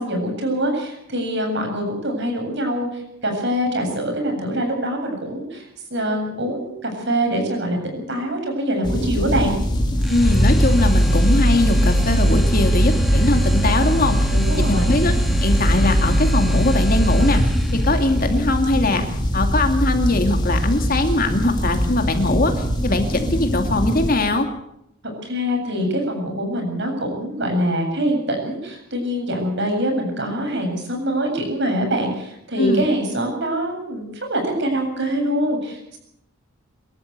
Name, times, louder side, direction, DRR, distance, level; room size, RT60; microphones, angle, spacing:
voice 1, 0.0-9.5 14.3-15.0 25.2-36.0, equal, 55° right, 3 dB, 7.6 m, -24 dB
sound 1, 8.8-24.1, equal, 20° left, 3.9 m, -23 dB
sound 2, 10.0-18.0, equal, ahead, 2.6 m, -20 dB
voice 2, 10.1-14.3 14.6-15.1 15.4-19.1 19.3-24.5 32.6-32.9, left 2 dB, 40° left, 5 dB, 2.4 m, -21 dB
25.5 x 13.5 x 8.2 m, 0.79 s
head